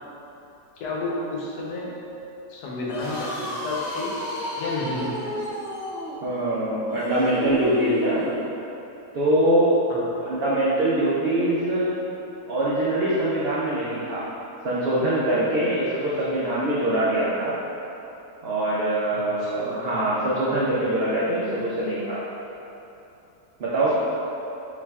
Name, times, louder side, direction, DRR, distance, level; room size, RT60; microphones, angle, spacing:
voice 1, 0.8-1.9 2.5-4.1 4.6-5.3 9.9-10.0 15.9-16.0 16.3-16.4 19.1-19.9, left 2 dB, 80° left, -4 dB, 1.3 m, -31 dB
sound 1, 2.8-8.4, equal, 60° left, 0.7 m, -32 dB
voice 2, 6.2-8.3 9.1-9.7 10.2-12.0 12.5-14.3 14.6-17.5 18.4-22.2 23.6-24.0, right 1 dB, 80° right, -8 dB, 0.5 m, -23 dB
6.9 x 2.5 x 2.3 m, 2.9 s
omnidirectional pair, 1.8 m